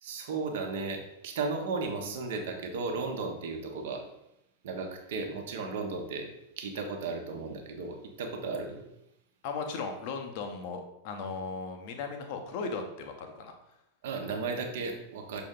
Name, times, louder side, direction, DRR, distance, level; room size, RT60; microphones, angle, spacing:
voice 1, 0.0-4.0 4.6-6.3 6.6-8.8 14.0-15.4, right 4 dB, 55° right, 3 dB, 1.1 m, -35 dB
voice 2, 9.4-13.6, left 4 dB, 45° left, 5 dB, 0.8 m, -37 dB
6.4 x 4.0 x 3.7 m, 0.83 s
figure-of-eight pair, 90°, 0 cm